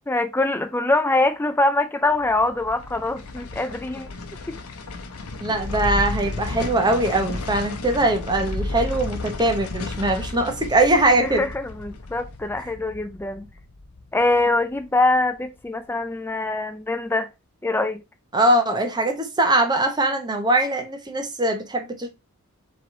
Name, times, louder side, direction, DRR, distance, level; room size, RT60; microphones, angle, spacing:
voice 1, 0.1-4.1 4.5-4.6 11.2-13.5 14.1-17.3 17.6-18.0, left 2 dB, 10° left, 0.4 m, -23 dB
sound 1, 2.1-15.3 15.6-15.7, left 2 dB, 85° left, 0.8 m, -33 dB
voice 2, 5.4-11.4 18.3-22.1, right 2 dB, 20° right, 0.9 m, -21 dB
4.6 x 3.1 x 3.7 m
head